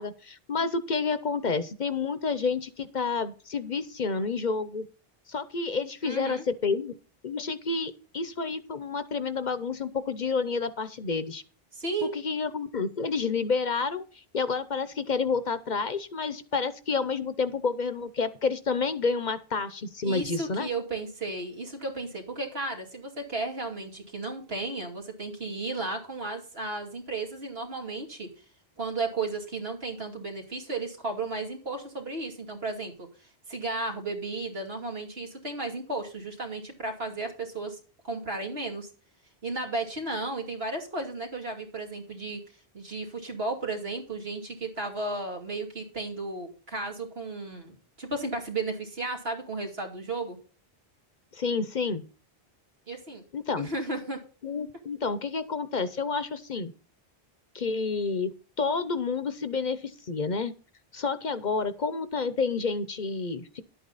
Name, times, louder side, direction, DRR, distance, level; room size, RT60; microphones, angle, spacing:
voice 1, 0.0-4.9 5.3-6.9 7.2-11.4 12.0-20.7 51.3-52.0 53.3-53.7 54.4-56.7 57.5-60.5 60.9-63.6, left 4 dB, 50° left, 13 dB, 0.9 m, -29 dB
voice 2, 6.0-6.4 11.7-12.1 20.0-28.3 28.8-33.1 33.5-37.8 38.0-38.9 39.4-42.4 42.7-50.4 52.9-53.3 53.6-54.2, right 2 dB, 75° right, 2 dB, 2.8 m, -34 dB
11.5 x 8.6 x 4.0 m, 0.37 s
omnidirectional pair, 1.0 m